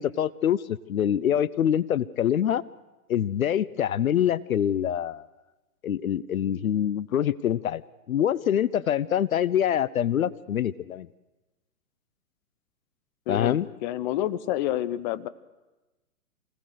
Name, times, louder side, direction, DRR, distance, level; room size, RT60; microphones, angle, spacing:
voice 1, 0.0-2.6 3.1-5.3 5.8-7.8 8.1-11.1 13.3-13.7, left 10 dB, 70° left, 20 dB, 0.7 m, -25 dB
voice 2, 13.3-15.3, left 13 dB, 30° left, 17 dB, 0.8 m, -29 dB
25.5 x 17.5 x 6.6 m, 1.1 s
figure-of-eight pair, 120°, 44 cm